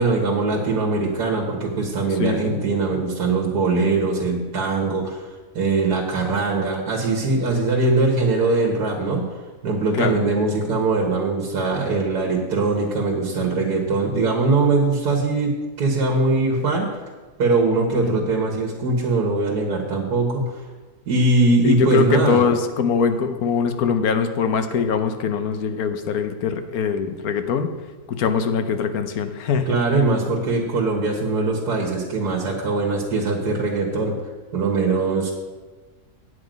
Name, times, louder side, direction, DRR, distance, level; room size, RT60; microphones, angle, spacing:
voice 1, 0.0-5.3 5.6-9.2 9.6-15.5 15.8-17.0 17.4-20.6 21.1-22.4 29.7-34.1 34.5-35.3, right 3 dB, 80° right, 0 dB, 1.9 m, -21 dB
voice 2, 2.1-2.6 9.9-10.3 17.7-18.1 21.6-27.7 28.1-29.8, left 6 dB, 70° left, 8 dB, 1.2 m, -22 dB
9.5 x 7.6 x 5.2 m, 1.3 s
omnidirectional pair, 1.7 m